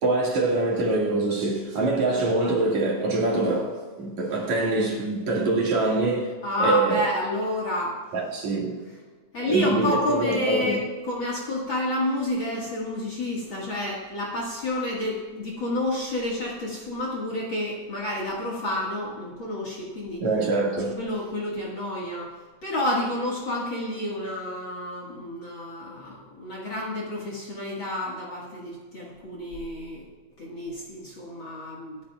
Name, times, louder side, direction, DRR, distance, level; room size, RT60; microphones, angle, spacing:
voice 1, 0.0-6.3 6.6-7.0 8.1-8.9 9.4-10.8 20.2-21.0, right 2 dB, 60° right, 3.2 m, -24 dB
voice 2, 6.4-8.0 9.3-20.2 21.0-22.3 22.6-30.1 30.4-32.0, left 1 dB, 45° left, 2.1 m, -29 dB
25.5 x 8.7 x 2.4 m
omnidirectional pair, 3.9 m